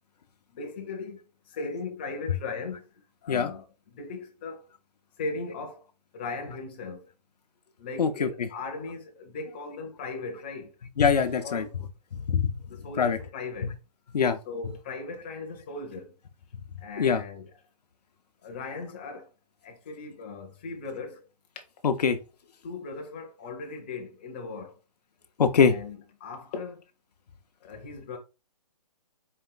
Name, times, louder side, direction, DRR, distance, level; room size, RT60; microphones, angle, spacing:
voice 1, 0.5-1.2 1.5-2.9 3.2-4.6 5.2-5.9 6.1-7.1 7.8-10.8 11.4-11.8 12.7-13.7 14.5-16.1 16.8-17.5 18.4-19.3 19.6-21.3 22.6-24.8 25.6-26.8 27.6-28.2, left 3 dB, 15° left, 0.5 m, -38 dB
voice 2, 8.0-8.5 11.0-11.7 12.1-12.5 13.0-13.2 13.6-13.7 14.1-14.4 17.0-17.2 21.8-22.2 25.4-25.7, left 6 dB, 85° left, 0.6 m, -23 dB
4.3 x 2.4 x 3.8 m
hypercardioid pair, 165°, 20 cm